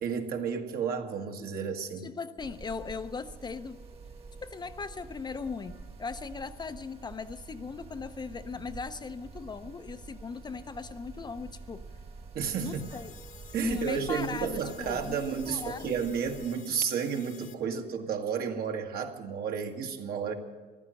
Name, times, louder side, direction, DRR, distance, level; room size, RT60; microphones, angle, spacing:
voice 1, 0.0-2.1 12.3-12.8 13.5-20.3, right 6 dB, 65° right, 3 dB, 1.7 m, -32 dB
voice 2, 2.0-3.8 4.4-11.9 12.6-13.1 13.6-16.1, left 5 dB, 25° left, 10 dB, 0.6 m, -39 dB
sound 1, 2.4-16.6, right 4 dB, 35° right, 1.4 m, -47 dB
sound 2, 12.5-17.5, left 7 dB, 55° left, 1.2 m, -52 dB
14.5 x 12.0 x 7.6 m, 1.3 s
cardioid pair, 110°, 17 cm